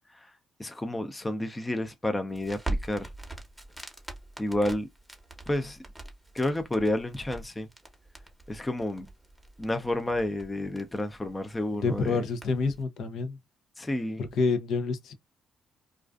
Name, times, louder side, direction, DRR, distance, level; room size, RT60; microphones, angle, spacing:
voice 1, 0.6-3.1 4.4-4.9 5.5-5.8 6.3-7.7 8.5-9.1 9.6-12.2 13.8-14.2, left 1 dB, 15° left, 0.5 m, -30 dB
Crackle, 2.3-12.8, right 2 dB, ahead, 0.8 m, -42 dB
voice 2, 11.7-13.4 14.2-15.1, left 4 dB, 70° left, 0.5 m, -28 dB
2.4 x 2.3 x 2.3 m
cardioid pair, 90°, 0 cm